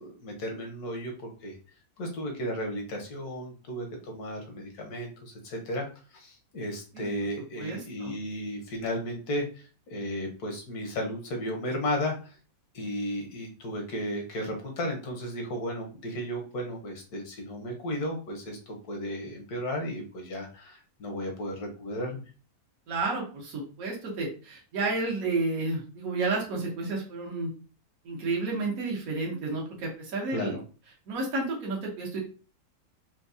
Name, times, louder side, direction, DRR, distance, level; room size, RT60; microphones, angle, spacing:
voice 1, 0.0-1.5 2.0-5.9 6.1-9.6 9.9-12.4 12.7-22.2 30.3-30.5, equal, 85° left, 2 dB, 1.5 m, -34 dB
voice 2, 7.6-8.1 22.9-27.5 28.0-30.6 31.1-32.2, right 3 dB, 70° right, -2 dB, 1.4 m, -31 dB
4.5 x 2.3 x 2.6 m, 0.36 s
omnidirectional pair, 1.6 m